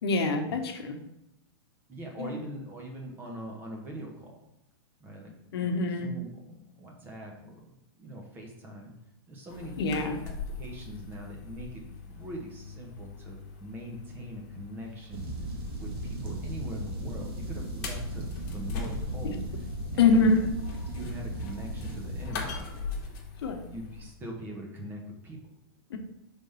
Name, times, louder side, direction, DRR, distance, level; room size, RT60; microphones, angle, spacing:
voice 1, 0.0-1.0 2.2-2.3 5.5-6.1 9.8-10.2 18.8-18.9 19.2-19.4 20.0-20.4 23.4-23.6 25.9-26.0, left 3 dB, 70° left, 5 dB, 1.0 m, -25 dB
voice 2, 1.9-4.3 5.0-8.9 9.3-10.3 10.6-15.3 15.8-19.4 19.9-20.4 20.9-22.5 23.6-25.5, right 1 dB, 15° right, 0 dB, 1.0 m, -42 dB
sound 1, 9.5-24.1, left 4 dB, 45° left, 1.2 m, -42 dB
sound 2, 15.1-22.3, right 1 dB, 60° right, 1.7 m, -36 dB
5.0 x 3.6 x 5.5 m, 0.85 s
supercardioid pair, 160°, 13 cm